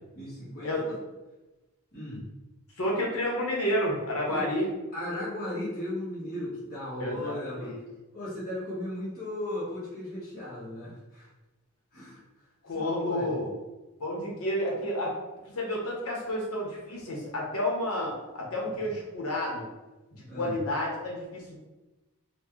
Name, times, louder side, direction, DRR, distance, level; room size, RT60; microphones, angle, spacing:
voice 1, 0.1-1.0 1.9-2.2 4.3-4.4 4.9-7.7 8.1-11.3 11.9-12.2 12.7-13.4 18.6-18.8 20.3-20.6, left 1 dB, 40° left, -10 dB, 1.3 m, -36 dB
voice 2, 2.8-4.7 7.0-7.8 12.6-13.5 14.0-15.2 15.5-19.7 20.1-21.6, left 1 dB, 75° left, -2 dB, 1.0 m, -30 dB
4.1 x 2.3 x 3.1 m, 1.1 s
head